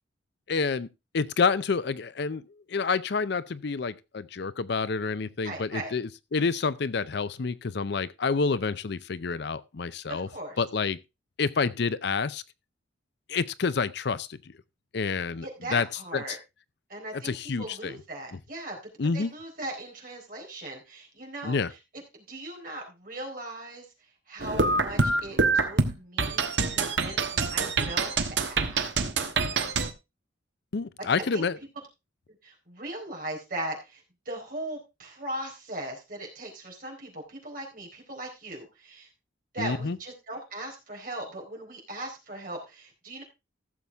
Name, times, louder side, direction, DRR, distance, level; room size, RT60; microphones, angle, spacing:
voice 1, 0.5-0.9 1.1-10.3 10.6-11.0 11.4-12.4 13.3-14.4 14.9-15.9 16.1-16.4 17.1-17.9 19.0-19.3 21.4-21.7 30.7-31.6 39.6-40.0, left 4 dB, 60° left, 0.5 m, -28 dB
voice 2, 5.4-5.9 10.1-10.6 15.4-16.4 16.9-18.8 19.1-21.6 22.1-23.8 24.3-29.1 29.5-29.7 31.0-31.1 31.3-31.4 32.4-39.1 39.5-43.2, right 1 dB, 45° right, 4.1 m, -39 dB
sound 1, 24.4-29.9, right 4 dB, 65° right, 1.2 m, -26 dB
15.0 x 7.1 x 3.5 m
head